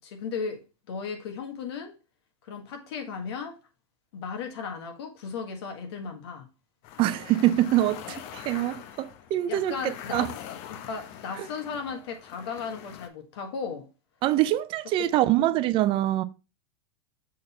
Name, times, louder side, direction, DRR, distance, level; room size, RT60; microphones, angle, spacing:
voice 1, 0.0-0.6 0.9-1.9 2.5-3.6 4.1-6.5 9.5-10.3 10.7-13.9, left 5 dB, 70° left, 1.6 m, -35 dB
sound 1, 6.8-13.1, left 10 dB, 50° left, 0.8 m, -43 dB
voice 2, 7.0-10.3 11.4-11.5 14.2-16.2, right 14 dB, 40° right, 0.5 m, -25 dB
6.5 x 4.0 x 4.2 m
hypercardioid pair, 125°, 14 cm